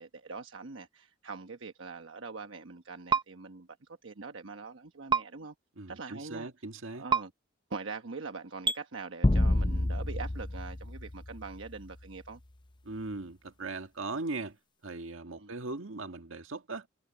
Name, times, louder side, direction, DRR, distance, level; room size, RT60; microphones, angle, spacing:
voice 1, 0.0-5.5 5.9-6.5 6.9-7.3 7.7-12.4 15.4-15.5, right 4 dB, 70° right, 1.1 m, -43 dB
sound 1, 3.1-3.2 5.1-5.2 7.1-7.2 8.6-8.8, right 5 dB, 25° right, 0.7 m, -25 dB
voice 2, 5.8-7.0 12.8-14.6 14.8-16.9, right 3 dB, 85° right, 1.7 m, -39 dB
sound 2, 9.2-11.8, left 1 dB, 25° left, 0.7 m, -28 dB
head